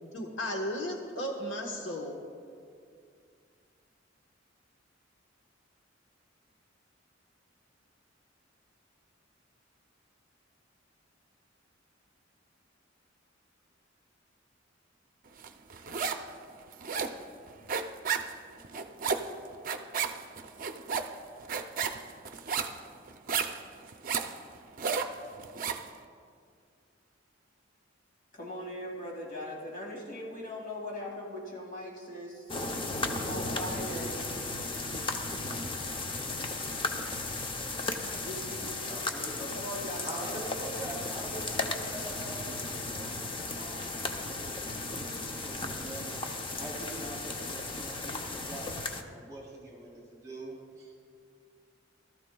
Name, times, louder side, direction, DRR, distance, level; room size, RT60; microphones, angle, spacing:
voice 1, 0.0-2.2, equal, 70° left, 1 dB, 1.2 m, -35 dB
sound 1, 15.4-16.3 16.6-25.9, right 6 dB, 45° right, 0.5 m, -33 dB
voice 2, 28.3-34.2 38.2-40.6, left 1 dB, 45° left, -3 dB, 2.5 m, -40 dB
sound 2, 32.5-49.0, left 2 dB, 25° left, 0.6 m, -35 dB
voice 3, 40.0-43.9 44.2-46.2 46.6-51.0, right 1 dB, 15° right, -2 dB, 3.2 m, -44 dB
18.5 x 13.0 x 2.3 m, 2.3 s
head